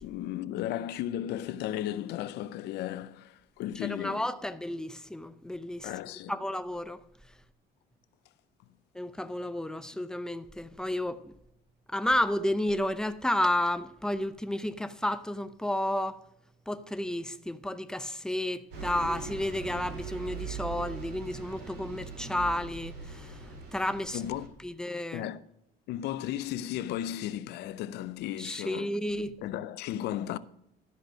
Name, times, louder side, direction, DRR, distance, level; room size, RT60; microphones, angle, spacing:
voice 1, 0.0-4.3 5.8-6.4 24.1-24.5 25.1-25.4 25.9-29.0 29.4-30.4, left 12 dB, 80° left, 0.6 m, -35 dB
voice 2, 3.8-5.9 6.3-7.0 8.9-11.2 11.9-16.2 16.7-23.4 23.7-24.2 24.6-25.3 28.4-29.4, left 1 dB, 5° left, 0.6 m, -31 dB
Bus, 18.7-24.5, right 5 dB, 85° right, 2.8 m, -41 dB
12.5 x 5.2 x 6.3 m
cardioid pair, 110°, 17 cm